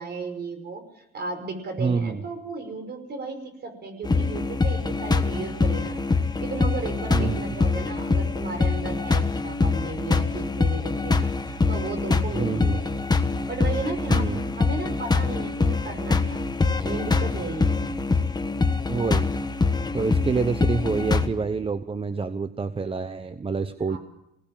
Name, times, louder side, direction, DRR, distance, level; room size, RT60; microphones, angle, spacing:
voice 1, 0.0-6.0 6.4-13.0 13.5-16.6 16.8-17.8 23.9-24.0, right 3 dB, 55° right, 7 dB, 5.5 m, -35 dB
voice 2, 1.8-2.2 7.1-7.6 12.3-12.8 14.1-14.4 18.9-19.3 19.9-24.0, right 4 dB, 25° right, 11 dB, 0.9 m, -27 dB
sound 1, 4.0-21.3, left 3 dB, 20° left, 1.4 m, -24 dB
22.0 x 18.5 x 7.4 m, 0.84 s
cardioid pair, 90°, 20 cm